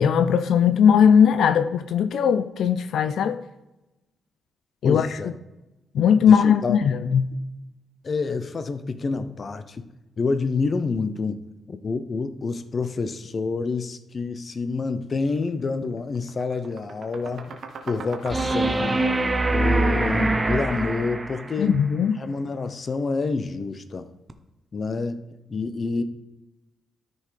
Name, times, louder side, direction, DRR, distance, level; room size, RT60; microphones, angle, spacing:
voice 1, 0.0-3.4 4.8-5.1 5.9-7.3 21.6-22.2, left 7 dB, 80° left, 0.4 m, -19 dB
voice 2, 4.8-5.3 6.3-6.8 8.0-9.8 10.2-11.4 11.7-17.6 17.8-19.1 19.5-21.8 22.2-24.1 24.7-25.2 25.5-26.0, left 4 dB, 40° left, 0.6 m, -28 dB
sound 1, 15.3-15.5 15.8-20.8, right 5 dB, 65° right, 1.1 m, -41 dB
sound 2, 18.3-21.6 24.3-24.4, right 2 dB, 20° right, 0.7 m, -23 dB
13.0 x 5.3 x 3.3 m
cardioid pair, 110°, 0 cm